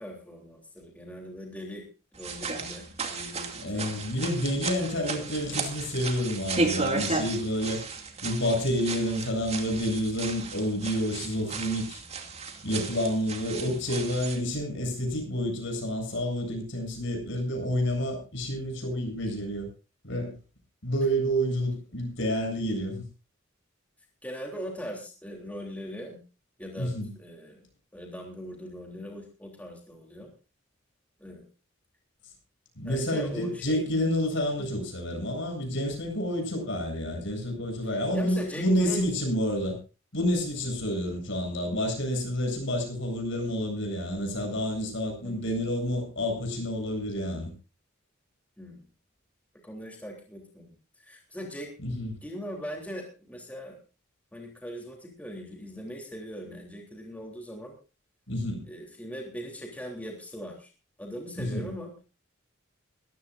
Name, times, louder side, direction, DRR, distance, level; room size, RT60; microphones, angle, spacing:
voice 1, 0.0-1.8 2.1-4.0 5.0-5.3 24.2-26.2 26.6-27.7 27.9-30.3 31.2-31.5 32.8-33.8 34.6-34.7 36.4-36.6 38.1-39.1 45.2-45.6 47.1-47.4 48.6-48.8 49.6-50.7 51.0-51.7 52.2-53.8 54.3-57.7 58.6-60.7 61.0-61.9, equal, 5° left, 0 dB, 3.3 m, -40 dB
sound 1, 2.2-14.4, right 3 dB, 30° right, 2.5 m, -34 dB
voice 2, 3.5-7.8 8.2-12.0 12.6-19.7 20.0-20.3 20.8-23.0 26.8-27.1 32.8-39.8 40.1-47.5 51.8-52.1 58.3-58.6 61.4-61.7, equal, 60° left, 4 dB, 7.7 m, -29 dB
22.5 x 15.0 x 2.6 m, 0.33 s
head